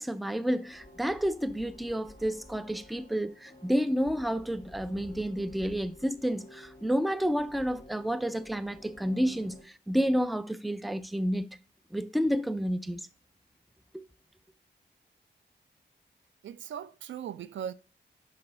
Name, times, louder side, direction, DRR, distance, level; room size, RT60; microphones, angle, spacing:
voice 1, 0.0-11.5 11.9-13.1 13.9-14.0, equal, ahead, 0.4 m, -30 dB
sound 1, 0.5-9.6, left 1 dB, 25° left, 1.7 m, -52 dB
voice 2, 16.4-17.7, right 9 dB, 85° right, 0.4 m, -38 dB
5.5 x 5.2 x 4.0 m
cardioid pair, 70°, 19 cm